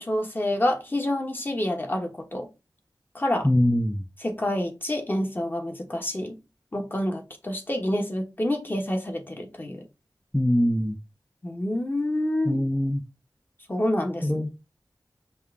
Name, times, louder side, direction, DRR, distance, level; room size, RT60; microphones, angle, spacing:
voice 1, 0.0-2.5 3.1-3.5 4.2-6.4 6.7-9.8 11.4-12.6 13.7-14.5, left 1 dB, 25° left, 1.0 m, -28 dB
voice 2, 3.4-4.0 10.3-11.0 12.5-13.0 14.2-14.5, left 1 dB, 5° left, 0.4 m, -22 dB
5.5 x 2.4 x 3.6 m
wide cardioid pair, 90°, 8 cm